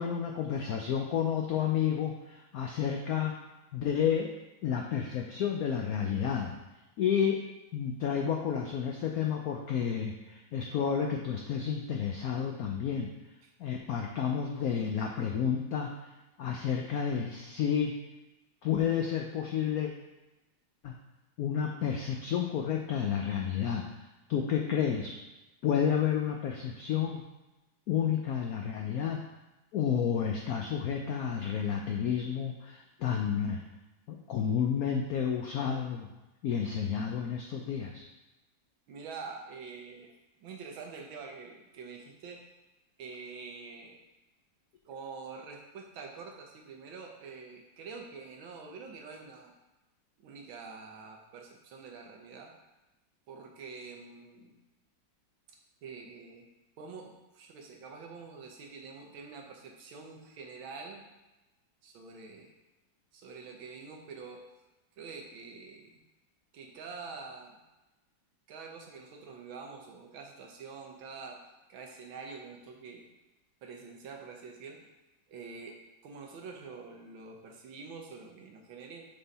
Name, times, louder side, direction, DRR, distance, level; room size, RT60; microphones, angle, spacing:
voice 1, 0.0-3.3 3.7-4.3 4.6-6.5 7.0-7.4 7.7-13.1 13.6-16.1 16.4-18.0 18.6-19.9 20.8-20.9 21.4-23.9 24.3-25.1 25.6-27.2 27.9-29.2 29.7-33.6 34.1-36.1 36.4-38.0, left 8 dB, 85° left, 2 dB, 0.8 m, -30 dB
voice 2, 38.9-42.5 43.0-44.0 44.8-49.5 50.2-52.5 53.3-54.6 55.8-56.5 56.8-61.1 61.8-62.5 63.1-64.4 65.0-66.0 66.5-67.6 68.5-71.4 71.7-73.1 73.6-74.9 75.3-79.0, right 4 dB, 80° right, 1 dB, 1.7 m, -46 dB
6.8 x 3.8 x 4.1 m, 1.0 s
omnidirectional pair, 2.2 m